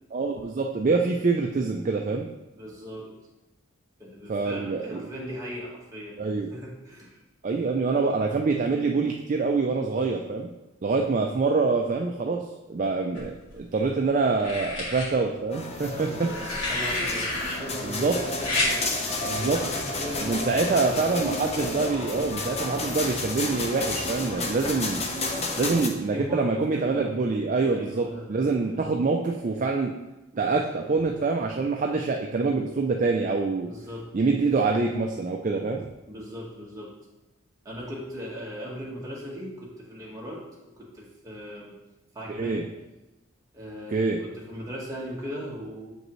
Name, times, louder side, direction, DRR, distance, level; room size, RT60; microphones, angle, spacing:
voice 1, 0.1-2.3 4.3-5.0 6.2-6.5 7.4-10.5 10.8-16.3 17.8-18.2 19.3-19.6 20.2-25.0 25.6-29.9 30.3-33.7 34.1-35.9 42.3-42.7 43.9-44.2, right 4 dB, 35° right, 2 dB, 0.3 m, -25 dB
voice 2, 2.6-3.1 4.0-7.2 7.7-8.1 15.8-18.5 18.9-21.3 25.5-27.2 27.7-28.3 28.6-28.9 33.7-34.1 36.1-36.9 37.6-41.7 42.1-42.6 43.5-45.9, equal, 15° right, -5 dB, 1.4 m, -38 dB
sound 1, 13.2-13.8 14.4-15.1 16.2-17.5 18.4-18.7 20.1-20.3, left 2 dB, 75° left, 2.3 m, -29 dB
sound 2, 15.5-25.9, left 2 dB, 30° left, 0.6 m, -31 dB
7.3 x 5.3 x 3.1 m, 1.0 s
head